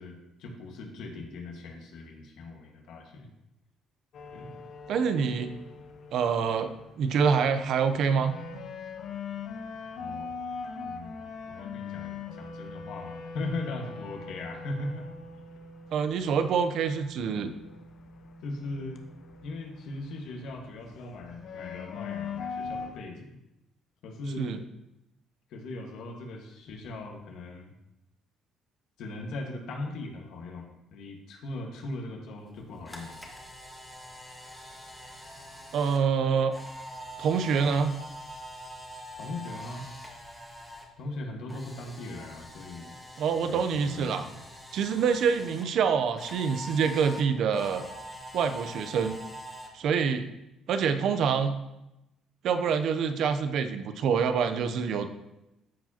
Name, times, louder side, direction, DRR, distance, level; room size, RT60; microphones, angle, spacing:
voice 1, 0.0-3.3 4.3-4.6 10.0-15.1 18.4-19.0 19.4-23.4 24.0-24.6 25.5-27.7 29.0-33.2 39.2-39.9 41.0-43.0 43.4-44.4, left 2 dB, 75° left, 2 dB, 1.5 m, -39 dB
sound 1, 4.1-23.0, left 5 dB, 60° left, 0.7 m, -41 dB
voice 2, 4.9-5.5 6.1-6.7 7.0-8.3 15.9-17.5 24.4-24.6 35.7-36.5 37.2-37.9 43.2-44.3 44.7-47.9 48.3-49.2 49.7-50.3 50.7-51.6 52.4-55.1, right 6 dB, 65° right, 9 dB, 0.7 m, -26 dB
Camera, 32.5-40.9 41.2-45.6 46.2-49.7, equal, 5° left, 1.5 m, -44 dB
13.5 x 4.7 x 2.9 m, 0.91 s
cardioid pair, 105°, 0 cm